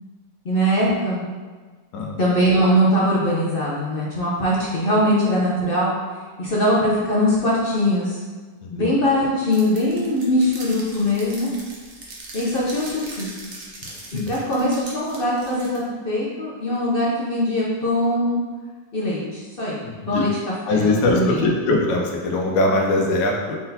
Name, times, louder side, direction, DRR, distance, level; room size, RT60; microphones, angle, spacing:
voice 1, 0.4-1.2 2.2-5.9 6.4-8.2 8.7-11.5 12.3-13.5 14.1-18.4 18.9-19.8 20.1-20.3 20.7-21.5, equal, 55° left, -6 dB, 0.6 m, -21 dB
sound 1, 9.5-15.8, right 2 dB, 50° right, 0.9 m, -40 dB
voice 2, 13.8-14.3 19.8-20.2 20.6-23.6, left 2 dB, 85° left, 0 dB, 1.3 m, -22 dB
4.5 x 3.9 x 2.8 m, 1.4 s
omnidirectional pair, 1.9 m